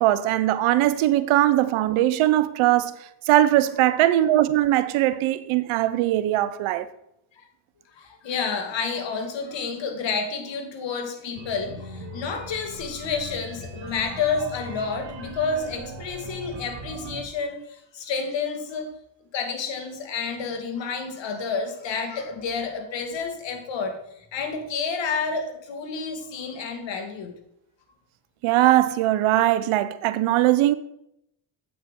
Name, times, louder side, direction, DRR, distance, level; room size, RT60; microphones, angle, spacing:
voice 1, 0.0-2.9 3.3-6.9 28.4-30.7, right 14 dB, 75° right, 0.7 m, -20 dB
voice 2, 7.9-18.9 19.3-27.4, left 5 dB, 60° left, 1.8 m, -30 dB
sound 1, 11.3-17.2, right 2 dB, 60° right, 1.7 m, -39 dB
8.3 x 7.8 x 3.6 m
supercardioid pair, 65°, 49 cm